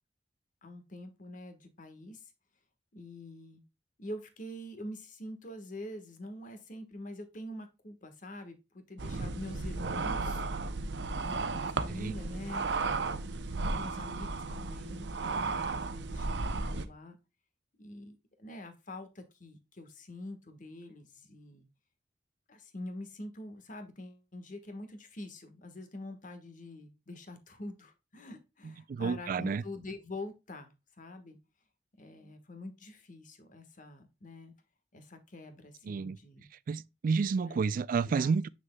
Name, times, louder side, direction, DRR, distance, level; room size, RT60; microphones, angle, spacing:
voice 1, 0.6-2.3 2.9-3.6 4.0-10.4 11.2-12.7 13.7-17.2 17.8-21.7 22.5-31.4 32.0-34.5 34.9-36.5 37.4-37.8 38.0-38.3, left 1 dB, 45° left, 1.4 m, -45 dB
sound 1, 9.0-16.9, right 3 dB, 70° right, 0.7 m, -34 dB
voice 2, 28.6-29.6 35.8-36.2 36.7-38.5, right 5 dB, 50° right, 0.3 m, -30 dB
7.6 x 6.2 x 2.2 m
head